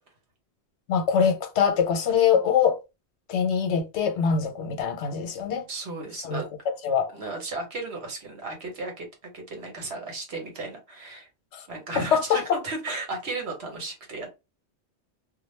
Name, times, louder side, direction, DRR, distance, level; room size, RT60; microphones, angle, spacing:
voice 1, 0.9-2.8 3.3-5.7 6.2-6.4 6.8-7.2 11.5-11.6 11.9-12.6, left 7 dB, 85° left, 1.0 m, -23 dB
voice 2, 5.5-6.4 7.1-9.1 9.3-11.3 11.7-14.3, right 3 dB, 70° right, 1.2 m, -35 dB
2.4 x 2.2 x 3.1 m
omnidirectional pair, 1.1 m